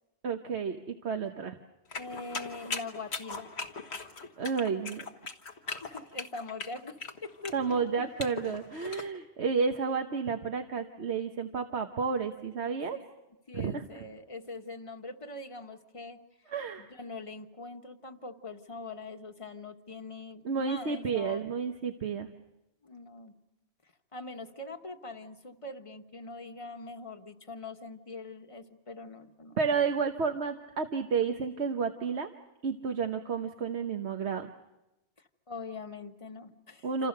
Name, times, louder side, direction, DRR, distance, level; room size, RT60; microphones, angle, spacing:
voice 1, 0.2-1.6 4.4-5.0 7.5-13.0 13.5-14.0 16.5-16.9 20.4-22.3 29.6-32.3 32.6-34.5 36.8-37.1, right 5 dB, 85° right, 6 dB, 1.4 m, -31 dB
sound 1, 1.9-9.1, left 4 dB, 75° left, 1.7 m, -40 dB
voice 2, 1.9-3.5 5.8-7.8 12.9-13.1 13.5-16.2 16.8-21.4 22.8-23.3 24.1-29.6 35.5-36.9, left 3 dB, 30° left, 6 dB, 1.4 m, -43 dB
27.5 x 27.5 x 6.7 m, 0.97 s
omnidirectional pair, 1.1 m